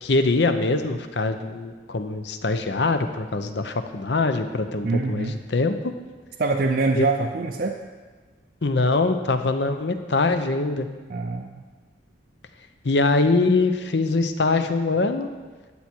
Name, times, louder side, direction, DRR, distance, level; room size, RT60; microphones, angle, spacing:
voice 1, 0.0-5.8 6.9-7.1 8.6-10.9 12.8-15.3, left 3 dB, 70° left, 8 dB, 0.7 m, -23 dB
voice 2, 4.8-5.4 6.4-7.8 11.1-11.6, right 3 dB, 50° right, 3 dB, 0.5 m, -24 dB
12.5 x 8.4 x 4.5 m, 1.4 s
head